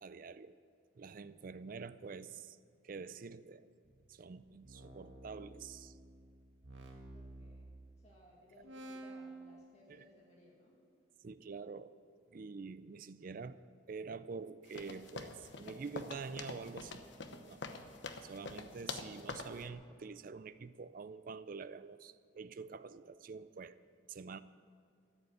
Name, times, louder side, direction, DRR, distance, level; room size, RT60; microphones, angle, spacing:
voice 1, 0.0-0.6 0.9-2.6 2.8-3.7 4.1-6.0 9.9-10.1 11.2-12.0 12.3-13.6 13.9-17.0 17.3-17.6 18.2-23.8 24.1-24.4, right 5 dB, 45° right, 14 dB, 0.4 m, -47 dB
sound 1, 3.8-8.2 8.6-9.3, right 2 dB, 65° right, 2.1 m, -52 dB
voice 2, 7.1-7.7 8.0-10.8, left 1 dB, 35° left, -3 dB, 2.0 m, -62 dB
sound 2, 14.7-19.7, left 3 dB, 60° left, 0.9 m, -46 dB
13.5 x 7.9 x 9.7 m, 2.3 s
head